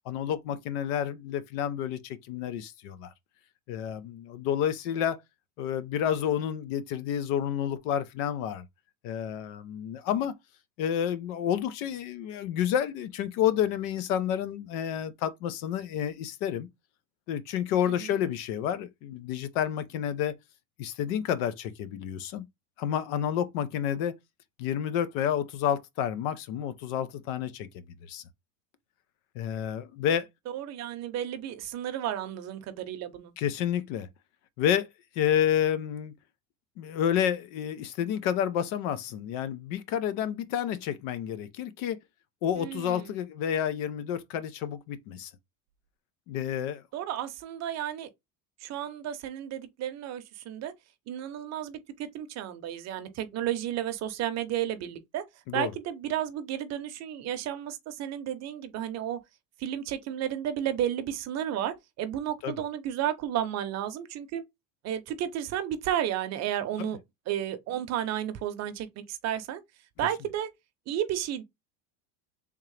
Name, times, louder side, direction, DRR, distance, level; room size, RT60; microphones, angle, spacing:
voice 1, 0.1-3.1 3.7-5.2 5.6-8.6 9.0-10.3 10.8-16.7 17.3-20.4 20.8-22.4 22.8-24.1 24.6-28.2 29.3-30.3 33.4-34.1 34.6-34.9 35.2-36.1 36.8-42.0 42.4-45.3 46.3-46.8 55.5-55.7 62.4-62.6 66.8-66.9, left 9 dB, 80° left, 0.7 m, -30 dB
voice 2, 17.8-18.2 30.5-33.3 42.6-43.1 46.9-48.1 48.6-50.7 51.1-55.2 55.5-59.2 59.6-64.4 64.8-67.0 67.3-69.6 70.0-70.5 70.9-71.4, right 11 dB, 40° right, 0.7 m, -32 dB
3.6 x 2.8 x 3.2 m
cardioid pair, 155°, 40 cm